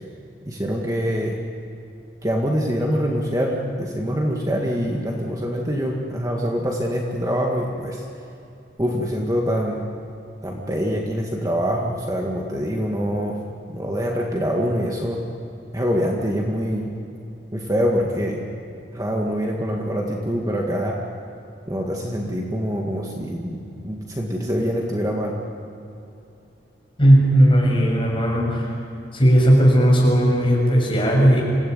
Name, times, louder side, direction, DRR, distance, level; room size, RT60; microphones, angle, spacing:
voice 1, 0.5-1.3 2.2-8.0 8.8-9.8 10.4-13.4 13.7-15.2 15.7-16.9 17.5-18.4 18.9-20.9 21.7-25.3, equal, 20° right, -1 dB, 1.9 m, -24 dB
voice 2, 27.0-28.7 29.1-31.4, equal, 30° left, -2 dB, 6.8 m, -16 dB
26.5 x 17.0 x 9.6 m, 2.7 s
head